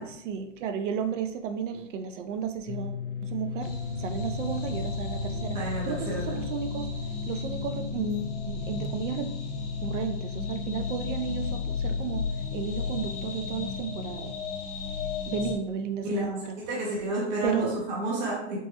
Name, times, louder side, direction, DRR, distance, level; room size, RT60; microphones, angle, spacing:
voice 1, 0.0-3.7 4.0-5.6 5.8-6.9 7.3-9.3 9.8-12.2 12.5-14.3 15.3-16.6 17.4-17.8, right 7 dB, 85° right, 8 dB, 0.5 m, -33 dB
sound 1, 2.7-14.1, left 7 dB, 80° left, 0.5 m, -36 dB
sound 2, 3.6-15.6, left 3 dB, 50° left, 0.9 m, -35 dB
voice 2, 5.5-6.4 16.0-16.3 16.6-18.6, right 1 dB, 40° right, -2 dB, 0.5 m, -30 dB
3.4 x 2.1 x 2.8 m, 0.80 s
supercardioid pair, 175°, 36 cm